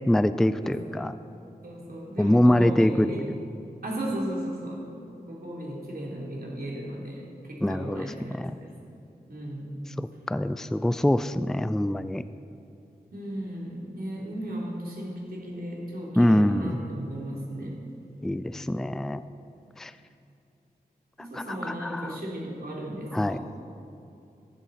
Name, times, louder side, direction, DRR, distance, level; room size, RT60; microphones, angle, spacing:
voice 1, 0.1-1.1 2.2-3.4 7.6-8.0 8.3-8.6 10.0-12.2 16.2-16.8 18.2-19.2 19.8-19.9 21.3-22.2 23.1-23.4, left 1 dB, 5° left, 12 dB, 0.3 m, -24 dB
voice 2, 0.6-1.0 1.6-3.2 3.8-8.7 9.3-9.7 13.1-17.7 21.2-23.5, right 1 dB, 70° right, -3 dB, 3.1 m, -35 dB
14.5 x 11.5 x 4.2 m, 2.7 s
wide cardioid pair, 85°, 16 cm